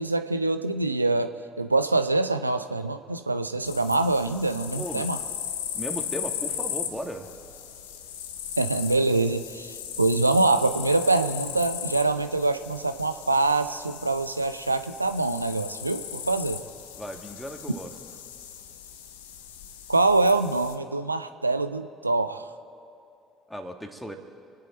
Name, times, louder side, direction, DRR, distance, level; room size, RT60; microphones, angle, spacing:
voice 1, 0.0-5.2 8.6-16.6 19.9-22.5, right 3 dB, 85° right, 10 dB, 0.4 m, -25 dB
sound 1, 3.6-20.7, left 9 dB, 70° left, 0.9 m, -37 dB
voice 2, 4.7-5.1 5.7-7.3 17.0-17.9 23.5-24.2, equal, ahead, 4 dB, 2.0 m, -36 dB
29.5 x 10.5 x 4.3 m, 2.8 s
figure-of-eight pair, 55°, 0 cm